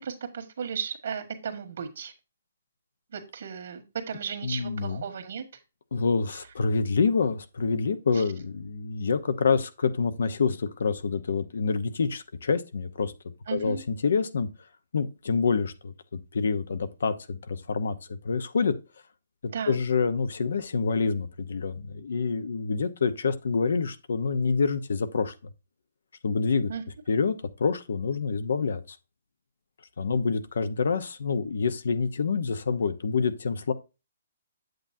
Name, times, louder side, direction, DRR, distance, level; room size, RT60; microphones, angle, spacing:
voice 1, 0.0-2.1 3.1-5.4 8.1-8.2 13.5-13.8 19.5-19.8 26.7-26.8, right 6 dB, 60° right, 1.6 m, -35 dB
voice 2, 4.4-5.0 5.9-13.1 13.5-14.5 14.9-18.7 19.7-25.3 26.2-26.7 27.1-27.3 27.6-29.0 30.0-33.7, left 5 dB, 75° left, 0.8 m, -27 dB
7.9 x 7.4 x 2.7 m
hypercardioid pair, 160°, 0 cm